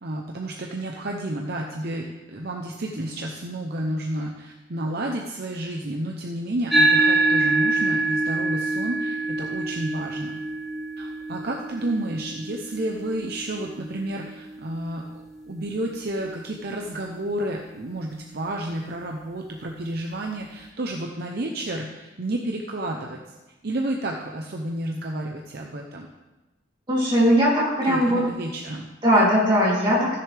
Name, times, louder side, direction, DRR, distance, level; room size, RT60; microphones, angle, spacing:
voice 1, 0.0-10.4 11.0-15.0 15.5-23.2 23.6-26.1 27.8-28.9, right 1 dB, 55° right, 1 dB, 0.8 m, -31 dB
sound 1, 6.7-15.4, right 2 dB, ahead, 1.2 m, -25 dB
voice 2, 26.9-28.2 29.0-30.2, equal, 25° right, -7 dB, 3.1 m, -19 dB
15.0 x 6.9 x 3.4 m, 1.1 s
head